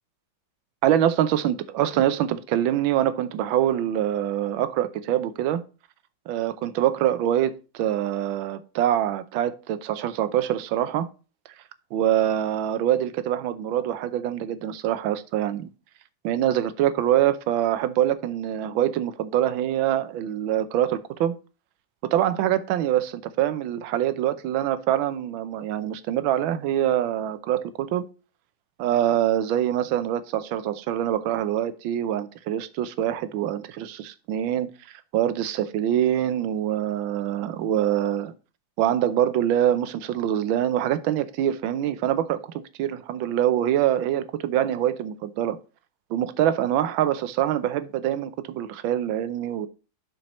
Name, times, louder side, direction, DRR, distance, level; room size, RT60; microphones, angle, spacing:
voice 1, 0.8-5.6 6.3-11.1 11.9-15.7 16.2-21.4 22.0-28.0 28.8-38.3 38.8-42.5 42.8-45.6 46.1-49.7, right 11 dB, 80° right, 1.5 m, -24 dB
11.5 x 4.5 x 3.0 m
omnidirectional pair, 2.2 m